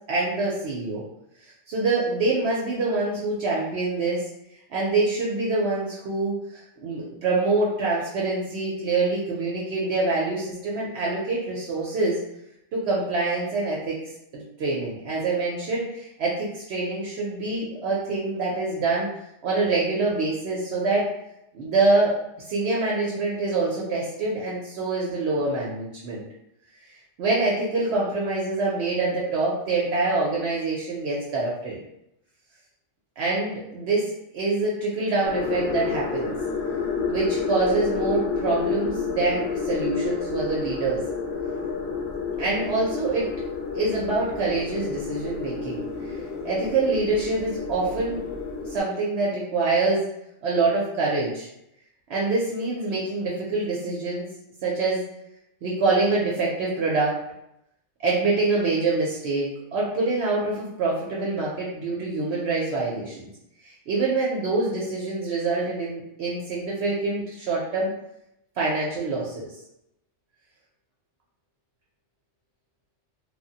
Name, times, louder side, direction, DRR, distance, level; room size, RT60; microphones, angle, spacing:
voice 1, 0.1-1.0 1.4-4.3 4.7-12.2 12.7-14.0 14.3-19.1 19.4-21.1 21.5-22.1 22.5-26.2 27.2-31.8 33.2-36.3 37.1-41.0 42.4-43.3 43.7-48.2 48.6-50.0 50.4-51.5 52.1-54.3 54.6-55.0 55.6-57.2 58.0-63.3 63.6-67.9 68.6-69.5, right 3 dB, 65° right, -4 dB, 0.8 m, -25 dB
sound 1, 35.2-48.8, left 5 dB, 65° left, 0.8 m, -30 dB
3.2 x 2.0 x 2.7 m, 0.81 s
omnidirectional pair, 1.3 m